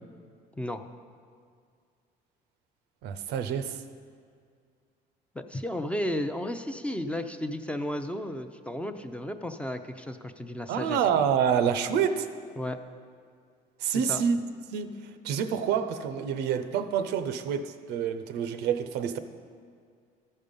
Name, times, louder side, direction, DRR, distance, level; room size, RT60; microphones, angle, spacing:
voice 1, 3.0-3.8 10.7-12.3 13.8-14.4 14.7-15.0 15.2-19.2, right 7 dB, 90° right, 10 dB, 0.6 m, -27 dB
voice 2, 5.3-11.0 12.6-12.8 14.1-14.2, left 1 dB, 5° left, 7 dB, 0.5 m, -33 dB
13.5 x 5.4 x 5.2 m, 2.1 s
cardioid pair, 110°, 17 cm